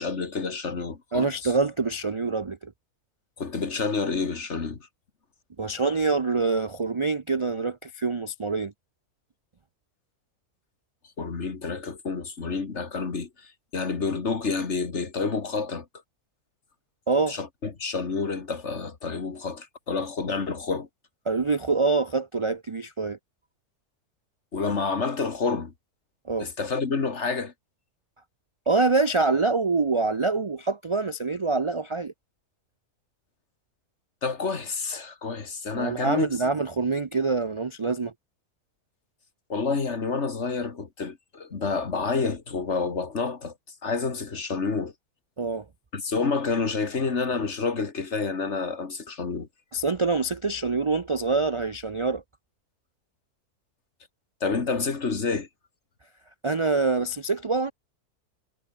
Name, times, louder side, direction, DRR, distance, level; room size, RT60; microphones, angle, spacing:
voice 1, 0.0-1.5 3.4-4.9 11.2-15.9 17.3-20.9 24.5-25.7 26.4-27.5 34.2-36.3 39.5-43.5 43.8-44.9 45.9-49.5 54.4-55.5, left 4 dB, 45° left, 2.2 m, -29 dB
voice 2, 1.1-2.7 5.6-8.7 17.1-17.4 21.3-23.2 26.3-26.5 28.7-32.1 35.8-38.1 45.4-45.6 49.7-52.2 56.4-57.7, right 3 dB, 40° right, 0.4 m, -25 dB
omnidirectional pair, 1.6 m